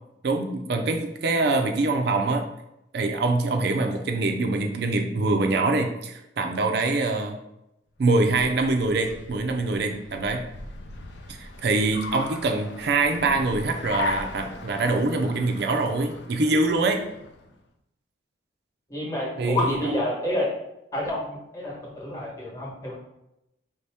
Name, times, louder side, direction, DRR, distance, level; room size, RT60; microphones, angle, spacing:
voice 1, 0.2-2.4 2.9-7.4 8.0-10.5 11.3-17.0 19.4-20.0, right 3 dB, 55° right, 4 dB, 0.4 m, -24 dB
Car, 8.0-17.5, left 2 dB, 65° left, 0.5 m, -37 dB
voice 2, 18.9-20.5 20.9-23.0, left 1 dB, 15° left, -3 dB, 1.1 m, -28 dB
5.2 x 2.7 x 3.4 m, 0.87 s
head